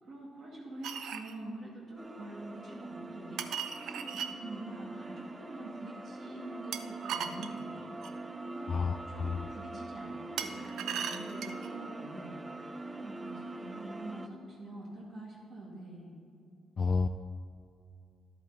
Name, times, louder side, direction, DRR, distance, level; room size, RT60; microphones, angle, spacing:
voice 1, 0.0-3.4 3.8-7.9 8.5-8.7 9.1-12.4 13.0-16.2, right 1 dB, 55° right, -3 dB, 2.0 m, -45 dB
sound 1, 0.8-1.3 3.4-4.3 6.7-8.2 10.4-11.7, right 8 dB, 75° right, 0.5 m, -38 dB
sound 2, 2.0-14.3, right 2 dB, 20° right, 0.5 m, -43 dB
voice 2, 8.7-9.4 16.8-17.1, left 4 dB, 45° left, 8 dB, 0.3 m, -30 dB
11.0 x 7.9 x 4.0 m, 2.5 s
cardioid pair, 90°, 0 cm